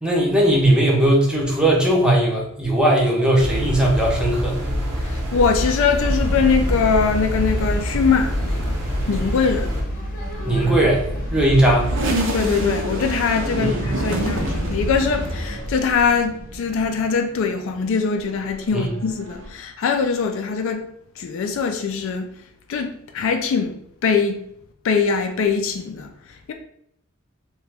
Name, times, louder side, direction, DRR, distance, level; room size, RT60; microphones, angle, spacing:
voice 1, 0.0-4.6 10.5-11.0 11.3-11.9 13.6-13.9 18.7-18.9, right 1 dB, 5° right, 0.6 m, -18 dB
sound 1, 3.4-9.8, equal, 90° right, 0.9 m, -26 dB
voice 2, 5.0-8.8 9.1-9.7 12.3-20.8 21.2-22.3 22.7-23.8 24.0-24.4 24.8-26.1 26.5-26.6, left 5 dB, 65° left, 0.4 m, -22 dB
sound 2, 6.0-15.5, equal, 40° left, 0.8 m, -29 dB
sound 3, 10.2-17.1 17.5-19.5, right 1 dB, 65° right, 0.5 m, -29 dB
2.9 x 2.2 x 3.3 m
head